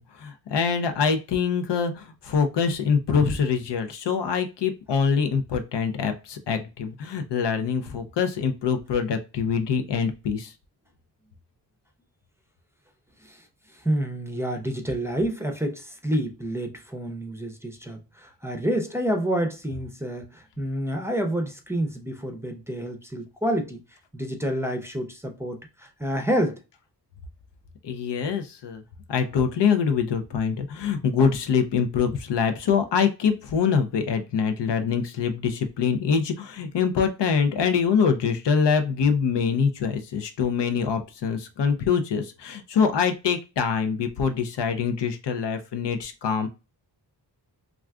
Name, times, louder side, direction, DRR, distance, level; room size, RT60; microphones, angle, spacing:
voice 1, 0.0-10.5 27.8-28.8 29.1-46.5, left 6 dB, 75° left, 0.6 m, -24 dB
voice 2, 13.2-23.8 24.1-26.6, right 1 dB, 5° right, 0.6 m, -28 dB
2.4 x 2.3 x 3.4 m
cardioid pair, 70°, 43 cm